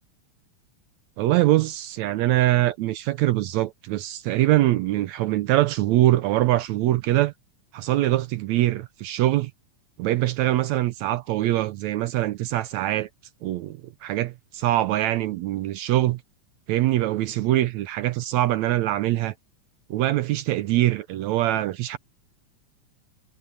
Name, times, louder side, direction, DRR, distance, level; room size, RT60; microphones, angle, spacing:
voice 1, 1.2-7.3 7.7-9.5 10.0-13.1 13.4-16.2 16.7-19.3 19.9-22.0, right 15 dB, 75° right, 1.8 m, -23 dB
omnidirectional pair, 3.5 m